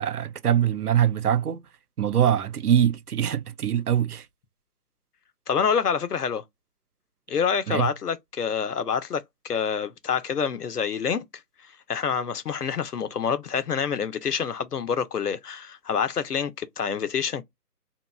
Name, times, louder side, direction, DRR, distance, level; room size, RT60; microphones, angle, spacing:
voice 1, 0.0-1.6 2.0-4.3 7.7-7.9, right 10 dB, 65° right, 0.5 m, -23 dB
voice 2, 5.5-6.4 7.3-11.2 11.9-17.4, left 6 dB, 70° left, 0.7 m, -27 dB
2.8 x 2.5 x 2.3 m
figure-of-eight pair, 145°, 49 cm